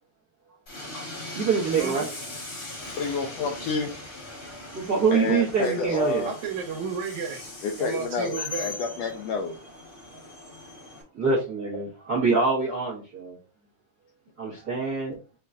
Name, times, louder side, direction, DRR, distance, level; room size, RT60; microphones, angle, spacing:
Train, 0.7-11.0, left 2 dB, 40° left, 1.1 m, -40 dB
voice 1, 1.3-2.0 4.7-6.3 8.4-8.5 11.1-13.4 14.4-15.2, right 4 dB, 60° right, -7 dB, 1.0 m, -25 dB
voice 2, 3.0-3.9 5.1-6.4 7.6-9.5, left 4 dB, 80° left, 3 dB, 1.5 m, -29 dB
voice 3, 6.3-7.5 7.8-8.7, right 6 dB, 75° right, 4 dB, 2.2 m, -32 dB
5.4 x 2.2 x 3.6 m, 0.33 s
omnidirectional pair, 3.4 m